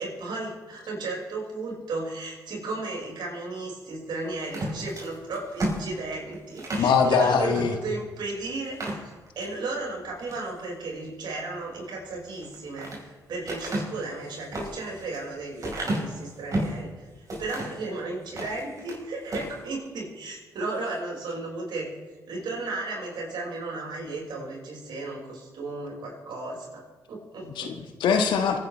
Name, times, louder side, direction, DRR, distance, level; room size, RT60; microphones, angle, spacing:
voice 1, 0.0-21.9 22.3-27.7, right 3 dB, 65° right, -3 dB, 5.9 m, -34 dB
sound 1, 4.4-6.9 7.5-7.7 8.1-8.2 8.6-9.5 10.0-10.5 12.3-13.0 13.5-16.8 17.3-17.8 18.2-19.0 19.3-19.6, right 1 dB, 45° right, 5.3 m, -32 dB
voice 2, 6.8-7.7 27.4-28.6, left 6 dB, 75° left, 5 dB, 1.6 m, -22 dB
25.0 x 10.5 x 3.5 m, 1.3 s
supercardioid pair, 55°, 8 cm